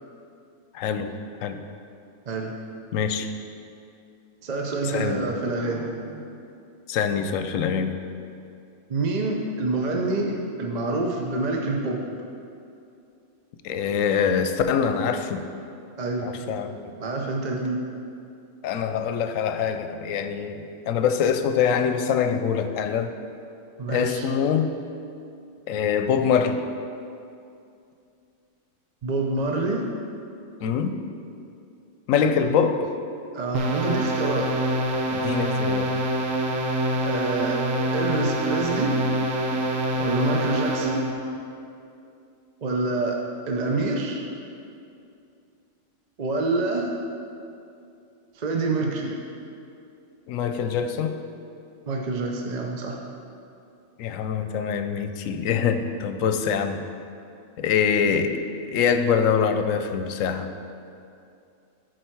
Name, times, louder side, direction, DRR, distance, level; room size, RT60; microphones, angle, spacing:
voice 1, 0.7-1.1 1.4-1.6 2.9-3.3 4.8-5.2 6.9-8.0 13.6-15.4 16.2-16.9 18.6-23.1 23.9-24.8 25.7-26.6 30.6-31.0 32.1-32.9 35.1-35.9 50.3-51.1 54.0-56.8 57.6-58.3 58.7-60.5, left 7 dB, 75° left, 8 dB, 1.0 m, -24 dB
voice 2, 4.4-6.3 8.9-12.0 16.0-16.4 17.0-17.8 23.8-24.3 29.0-29.8 32.4-32.6 33.3-34.5 37.0-37.6 37.9-39.0 40.0-41.1 42.6-43.2 43.5-44.2 46.2-46.9 48.3-49.2 51.9-53.0, right 3 dB, 40° right, 0 dB, 0.6 m, -27 dB
sound 1, 33.5-41.1, right 1 dB, 80° right, 1.2 m, -25 dB
12.5 x 4.6 x 4.6 m, 2.6 s
omnidirectional pair, 1.4 m